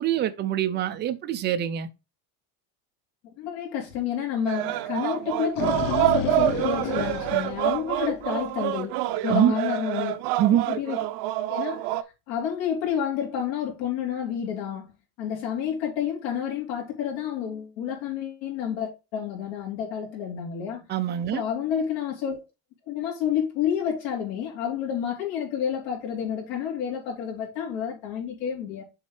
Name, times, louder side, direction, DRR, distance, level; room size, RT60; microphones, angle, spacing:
voice 1, 0.0-1.9 9.3-9.5 10.4-10.7 20.9-21.4, right 12 dB, 25° right, 0.3 m, -24 dB
voice 2, 3.4-10.1 10.7-11.0 11.5-11.9 12.3-14.9 15.2-20.8 21.3-22.4 22.9-28.8, left 8 dB, 80° left, 3.6 m, -29 dB
sound 1, 4.5-12.0, right 15 dB, 60° right, 0.8 m, -27 dB
sound 2, 5.2-8.5, left 10 dB, 45° left, 0.7 m, -32 dB
7.3 x 4.2 x 4.7 m
cardioid pair, 160°, 49 cm